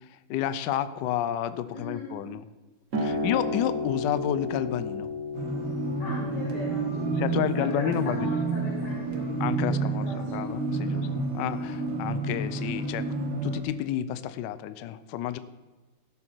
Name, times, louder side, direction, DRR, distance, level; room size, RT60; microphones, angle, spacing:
voice 1, 0.3-2.4 3.0-5.1 7.2-8.3 9.4-13.0 13.4-15.4, left 10 dB, 70° left, 13 dB, 1.1 m, -30 dB
voice 2, 1.7-2.2 2.9-3.3 6.0-9.3 9.6-10.4 10.7-11.1, left 1 dB, 55° left, -4 dB, 2.7 m, -40 dB
sound 1, 2.9-10.1, left 2 dB, 40° right, 1.4 m, -34 dB
sound 2, 5.3-13.6, right 3 dB, 55° right, 2.0 m, -30 dB
16.0 x 7.6 x 4.5 m, 1.3 s
omnidirectional pair, 2.3 m